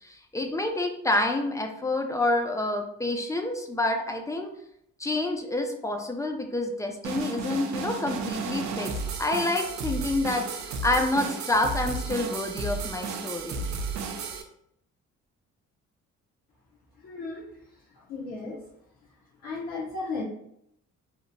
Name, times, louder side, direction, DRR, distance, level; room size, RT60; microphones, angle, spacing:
voice 1, 0.0-4.5 5.0-8.9 9.2-10.4 10.8-13.7, left 2 dB, 10° left, 4 dB, 0.3 m, -28 dB
sound 1, 7.0-14.4, right 4 dB, 70° right, 0.4 m, -33 dB
voice 2, 17.0-18.6 19.3-20.2, left 3 dB, 65° left, -7 dB, 0.7 m, -36 dB
2.8 x 2.1 x 2.6 m, 0.73 s
cardioid pair, 90°, 30 cm